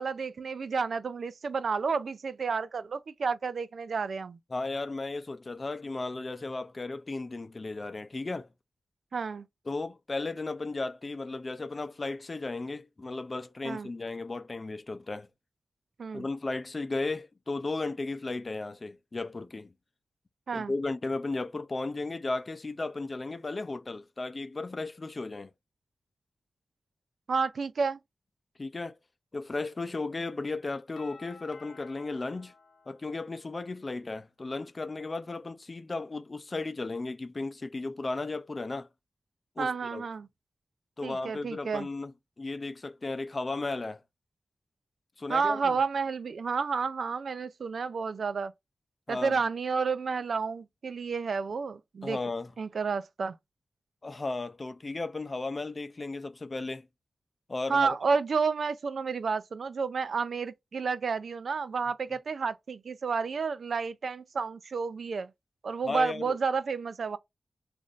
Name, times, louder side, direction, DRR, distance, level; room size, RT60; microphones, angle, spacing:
voice 1, 0.0-4.4 9.1-9.5 13.6-13.9 16.0-16.3 20.5-20.7 27.3-28.0 39.6-40.3 41.0-41.9 45.3-48.5 49.1-52.2 52.6-53.3 57.7-65.3 65.6-67.2, right 5 dB, 75° right, 0.4 m, -30 dB
voice 2, 4.5-8.5 9.7-15.3 16.1-19.7 20.5-25.5 28.6-29.0 29.3-32.5 32.9-38.9 39.6-40.0 41.0-44.0 45.2-45.8 49.1-49.4 52.0-52.5 54.0-56.9 57.5-58.0 65.8-66.4, left 3 dB, 40° left, 0.5 m, -35 dB
Doorbell, 31.0-33.8, left 4 dB, 85° left, 0.8 m, -54 dB
3.1 x 2.6 x 3.7 m
cardioid pair, 70°, 0 cm